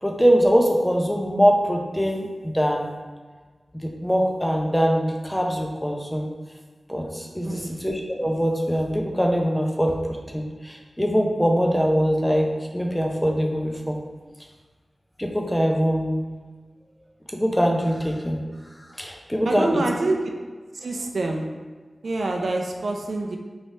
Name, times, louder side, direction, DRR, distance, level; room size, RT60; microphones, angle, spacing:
voice 1, 0.0-2.9 3.8-6.3 6.9-9.9 10.3-12.5 12.7-14.0 15.2-16.2 17.3-18.4 19.0-19.8, equal, 5° left, 1 dB, 0.4 m, -22 dB
voice 2, 7.4-7.8 19.5-20.2 20.7-21.5 22.0-23.4, right 2 dB, 80° right, 1 dB, 0.3 m, -26 dB
3.2 x 3.1 x 2.7 m, 1.4 s
wide cardioid pair, 85°, 0 cm